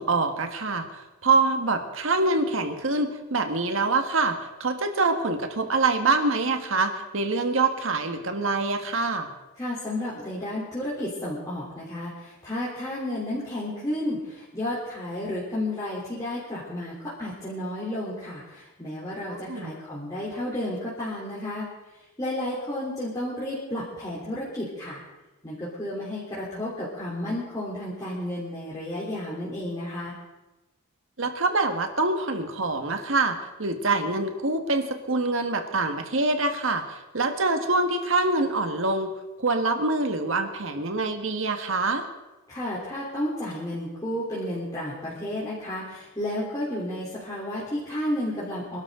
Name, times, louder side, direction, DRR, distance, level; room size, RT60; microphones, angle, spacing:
voice 1, 0.0-9.3 19.3-19.7 31.2-39.1 39.4-42.0, right 3 dB, 65° right, 6 dB, 1.7 m, -25 dB
voice 2, 9.6-21.7 22.2-25.0 25.4-30.2 42.5-48.8, left 1 dB, 15° left, -8 dB, 3.6 m, -32 dB
26.0 x 12.5 x 3.9 m, 1.1 s
head